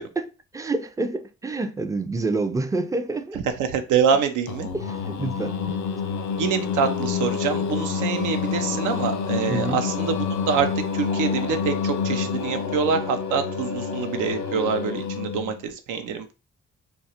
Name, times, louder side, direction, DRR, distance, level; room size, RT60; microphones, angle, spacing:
voice 1, 0.0-3.4 4.7-5.8 9.5-9.8, right 3 dB, 10° right, 0.3 m, -28 dB
voice 2, 3.3-4.7 6.4-10.2 10.5-10.7 10.9-16.3, right 6 dB, 80° right, 0.5 m, -25 dB
Singing, 4.5-15.6, left 6 dB, 70° left, 0.5 m, -28 dB
2.3 x 2.0 x 2.7 m
supercardioid pair, 50°, 30 cm